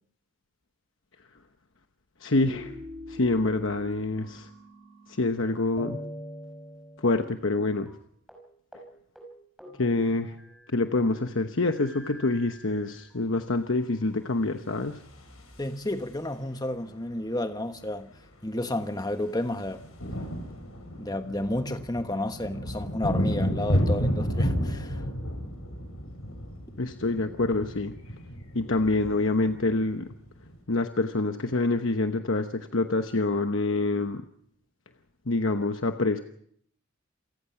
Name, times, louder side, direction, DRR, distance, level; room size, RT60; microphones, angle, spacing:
voice 1, 2.2-2.7 3.1-4.5 5.2-6.0 7.0-7.9 9.8-10.3 10.7-15.0 26.8-27.9 28.5-30.1 30.7-34.2 35.3-36.2, left 2 dB, 65° left, 1.0 m, -26 dB
sound 1, 2.4-5.4 5.8-7.6 7.9-8.0 8.3-8.5 8.7-8.9 9.2-10.9 11.6-13.2 13.9-14.8, left 1 dB, ahead, 5.4 m, -45 dB
sound 2, 14.8-16.4 17.7-17.8 18.0-18.2 18.5-30.6, equal, 85° left, 6.9 m, -32 dB
voice 2, 15.6-18.1 18.4-19.8 20.9-25.0, left 1 dB, 20° left, 1.2 m, -31 dB
28.0 x 18.5 x 5.9 m
head